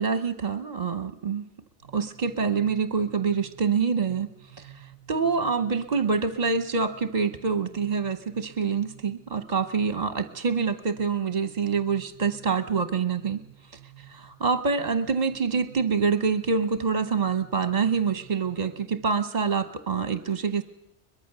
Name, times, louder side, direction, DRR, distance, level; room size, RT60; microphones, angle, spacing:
voice 1, 0.0-1.4 1.9-4.3 4.5-13.4 14.1-20.6, right 5 dB, 40° right, 10 dB, 1.0 m, -26 dB
sound 1, 1.8-19.1, right 11 dB, 35° left, 7.0 m, -52 dB
22.5 x 21.5 x 6.7 m, 0.80 s
omnidirectional pair, 1.1 m